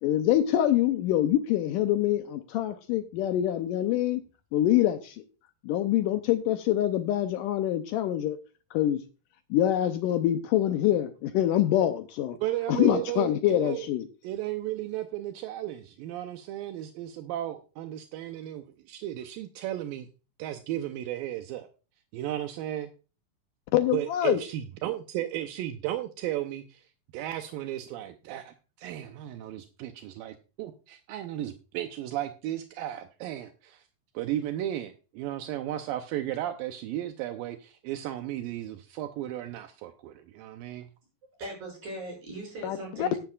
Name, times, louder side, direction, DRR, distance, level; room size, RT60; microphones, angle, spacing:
voice 1, 0.0-4.2 4.5-5.2 5.6-8.4 8.7-9.0 9.5-12.4 12.7-14.0 23.7-24.4 42.6-43.1, left 12 dB, 80° left, 9 dB, 2.1 m, -25 dB
voice 2, 12.4-13.9 14.2-20.1 20.4-21.7 22.1-22.9 23.9-26.9 27.1-33.8 34.1-40.9, right 13 dB, 80° right, 7 dB, 2.4 m, -34 dB
voice 3, 41.4-43.2, right 1 dB, 50° right, 0 dB, 7.8 m, -39 dB
13.5 x 10.5 x 2.4 m, 0.33 s
omnidirectional pair, 4.2 m